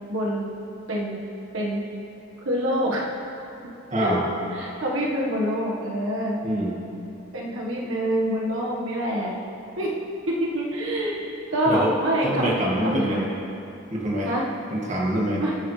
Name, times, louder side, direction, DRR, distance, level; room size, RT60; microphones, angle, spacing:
voice 1, 0.1-0.5 0.9-1.2 1.5-1.8 2.4-3.1 4.0-6.4 7.3-9.3 9.8-9.9 10.3-12.6 12.8-13.3 14.2-14.4 15.4-15.6, equal, 80° right, -3 dB, 1.5 m, -26 dB
voice 2, 3.9-4.2 6.4-6.7 11.7-11.9 12.2-13.3 13.9-14.3 14.7-15.4, equal, 35° right, -4 dB, 2.0 m, -25 dB
21.5 x 9.1 x 3.3 m, 2.8 s
head